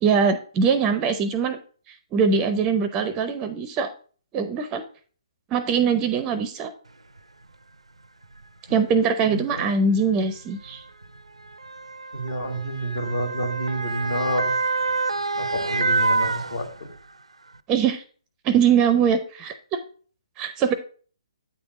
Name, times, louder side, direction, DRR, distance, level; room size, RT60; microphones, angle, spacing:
voice 1, 0.0-1.6 1.9-3.9 4.3-4.8 5.5-6.7 8.7-10.8 17.7-18.0 18.4-19.8 20.4-20.7, right 6 dB, 20° right, 10 dB, 0.5 m, -22 dB
Motor vehicle (road) / Siren, 7.2-7.3 8.2-8.4 9.5-17.1 17.5-17.6, right 3 dB, 85° right, 0.5 m, -27 dB
voice 2, 9.2-9.7 12.1-14.6 15.4-16.7, equal, 65° left, 4 dB, 1.9 m, -29 dB
8.7 x 3.5 x 4.9 m, 0.43 s
figure-of-eight pair, 135°, 3 cm